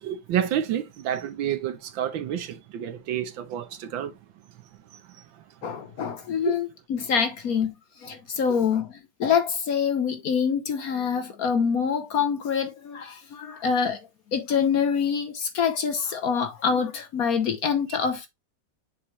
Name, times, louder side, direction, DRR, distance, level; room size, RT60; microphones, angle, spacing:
voice 1, 0.0-4.1 6.4-6.6, right 10 dB, 80° right, 1.6 m, -29 dB
voice 2, 5.6-7.7 8.0-14.0 14.3-18.3, left 6 dB, 55° left, 1.2 m, -25 dB
7.2 x 4.6 x 3.2 m
omnidirectional pair, 2.1 m